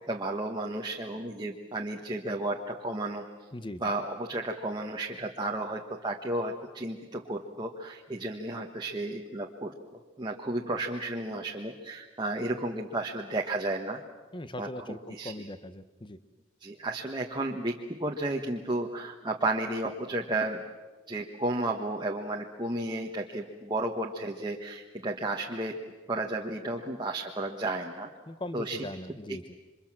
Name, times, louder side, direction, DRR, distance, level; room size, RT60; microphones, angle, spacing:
voice 1, 0.0-3.3 3.8-9.7 10.2-14.0 14.6-15.5 16.6-20.6 21.1-25.7 26.1-28.1 28.5-28.9 29.3-29.4, right 2 dB, 20° right, 1 dB, 1.4 m, -33 dB
voice 2, 14.3-16.2 28.3-29.4, left 1 dB, 25° left, 12 dB, 1.0 m, -40 dB
28.5 x 25.0 x 7.6 m, 1.3 s
head